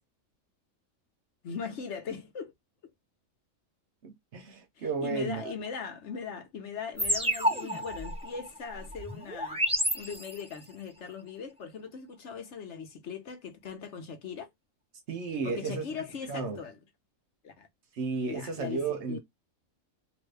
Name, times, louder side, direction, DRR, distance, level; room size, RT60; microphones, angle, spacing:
voice 1, 1.4-2.5 4.8-9.6 9.9-14.5 15.4-16.8 17.4-17.7 18.3-18.8 19.1-19.2, left 6 dB, 60° left, 1.1 m, -40 dB
voice 2, 4.0-5.5 15.1-15.8 16.3-16.6 17.9-19.2, right 4 dB, 60° right, 1.0 m, -33 dB
sound 1, 7.0-10.6, equal, 10° right, 0.4 m, -31 dB
2.9 x 2.6 x 3.2 m
omnidirectional pair, 1.4 m